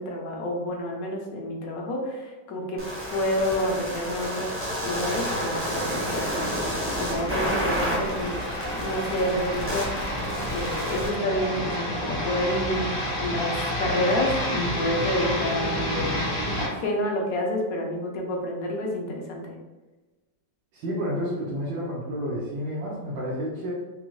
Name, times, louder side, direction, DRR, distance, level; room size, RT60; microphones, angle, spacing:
voice 1, 0.0-2.8 3.1-4.5 4.8-6.5 6.9-8.4 8.8-10.1 10.5-16.3 16.5-19.6, left 1 dB, 65° left, 0 dB, 1.0 m, -29 dB
sound 1, 2.8-11.1, equal, 15° right, 0.4 m, -30 dB
sound 2, 4.3-16.7, equal, 80° left, 2.1 m, -31 dB
sound 3, 8.6-9.7 10.3-14.5, right 3 dB, 65° right, 1.2 m, -42 dB
voice 2, 20.7-23.7, equal, 85° right, -6 dB, 1.6 m, -30 dB
5.2 x 2.1 x 3.1 m, 1.2 s
omnidirectional pair, 1.9 m